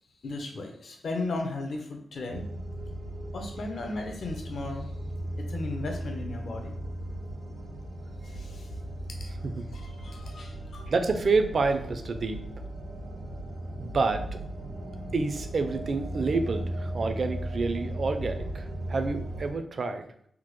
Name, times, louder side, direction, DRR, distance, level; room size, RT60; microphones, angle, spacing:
voice 1, 0.2-2.5 3.3-4.9 5.5-6.7 8.2-8.7 9.2-9.3 9.7-10.9, left 2 dB, 65° left, 3 dB, 0.6 m, -36 dB
sound 1, 2.3-19.5, right 1 dB, 85° right, 1.1 m, -37 dB
voice 2, 10.9-12.4 13.8-14.4 15.1-20.0, right 3 dB, 55° right, 7 dB, 0.4 m, -28 dB
3.6 x 2.0 x 3.0 m, 0.67 s
wide cardioid pair, 100°, 0 cm